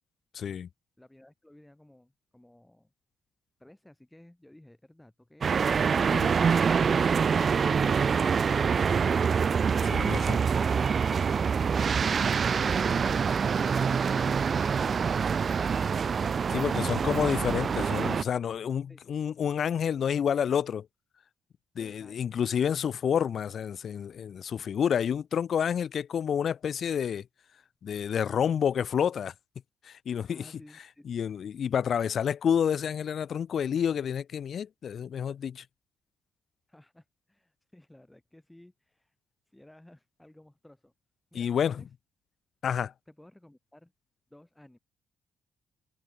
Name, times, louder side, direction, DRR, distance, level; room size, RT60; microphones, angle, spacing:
voice 1, 0.3-0.7 6.1-6.3 9.9-10.4 16.5-20.9 21.8-27.3 27.8-29.3 29.8-30.4 31.1-35.6 41.3-41.8 42.6-42.9, left 8 dB, 55° left, 0.4 m, -29 dB
voice 2, 1.0-2.9 3.6-5.7 18.9-19.0 21.8-22.4 30.3-31.1 36.7-39.2 39.5-40.9 41.3-41.9 43.1-43.9 44.3-44.8, left 1 dB, 10° left, 3.4 m, -56 dB
sound 1, 5.4-18.2, right 6 dB, 45° right, 0.6 m, -25 dB
cardioid pair, 90°, 0 cm